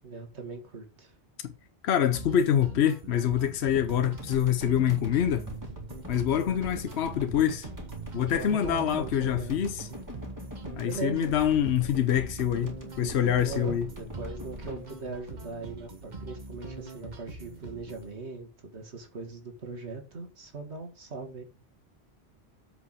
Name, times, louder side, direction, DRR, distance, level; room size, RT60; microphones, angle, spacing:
voice 1, 0.0-1.1 6.3-6.6 8.3-9.6 10.8-11.3 13.4-21.4, right 4 dB, 90° right, 2.2 m, -40 dB
voice 2, 1.8-5.4 6.1-7.7 8.1-9.9 10.7-13.9, left 9 dB, 75° left, 1.0 m, -25 dB
sound 1, 2.1-18.1, right 3 dB, 45° right, 1.4 m, -43 dB
sound 2, 3.7-16.2, equal, 15° right, 2.4 m, -44 dB
8.1 x 5.1 x 6.4 m
omnidirectional pair, 1.1 m